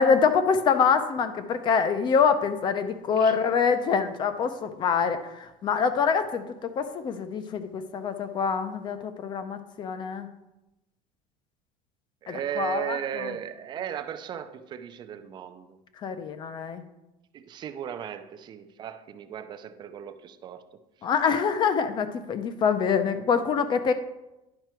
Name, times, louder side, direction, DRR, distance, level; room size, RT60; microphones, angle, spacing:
voice 1, 0.0-10.3 12.3-13.0 16.0-16.8 21.0-23.9, left 6 dB, 30° left, 10 dB, 0.6 m, -25 dB
voice 2, 12.2-15.8 17.3-20.6, right 9 dB, 25° right, 9 dB, 0.5 m, -36 dB
10.5 x 5.8 x 4.4 m, 0.95 s
cardioid pair, 170°, 17 cm